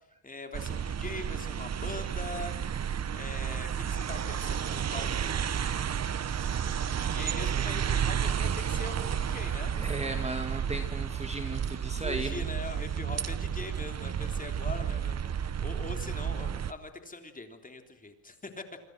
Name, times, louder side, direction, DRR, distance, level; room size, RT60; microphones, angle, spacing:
voice 1, 0.2-2.6 3.1-5.8 6.5-9.7 12.0-18.6, left 2 dB, 20° left, 6 dB, 3.4 m, -42 dB
sound 1, 0.5-16.7, right 8 dB, 35° right, 1.1 m, -32 dB
voice 2, 9.8-12.4, right 2 dB, 15° right, 6 dB, 2.2 m, -36 dB
27.5 x 26.0 x 6.3 m, 0.78 s
cardioid pair, 135°, 45 cm